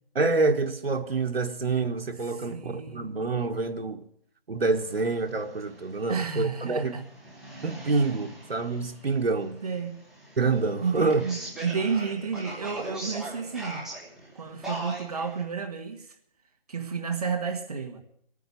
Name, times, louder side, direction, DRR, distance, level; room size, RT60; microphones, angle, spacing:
voice 1, 0.1-4.0 4.5-6.9 7.6-9.6 10.4-11.2, right 3 dB, 90° right, 1.5 m, -27 dB
voice 2, 2.3-3.1 6.1-7.0 9.6-10.0 10.8-13.8 14.3-16.1 16.7-18.0, right 5 dB, 40° right, 1.7 m, -31 dB
sound 1, 4.7-15.4, right 1 dB, ahead, 1.4 m, -41 dB
14.5 x 9.2 x 9.6 m
hypercardioid pair, 170°, 29 cm